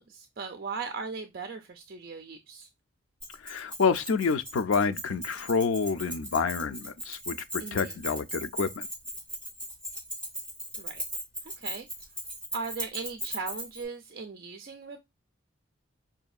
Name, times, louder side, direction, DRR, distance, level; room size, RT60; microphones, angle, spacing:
voice 1, 0.0-2.7 7.6-8.0 10.8-11.0 11.4-11.9 12.5-15.0, right 4 dB, 50° right, 0.4 m, -38 dB
Keys jangling, 3.2-13.8, equal, 5° left, 2.5 m, -38 dB
voice 2, 3.4-8.9, left 5 dB, 90° left, 0.4 m, -28 dB
5.1 x 2.7 x 2.3 m
head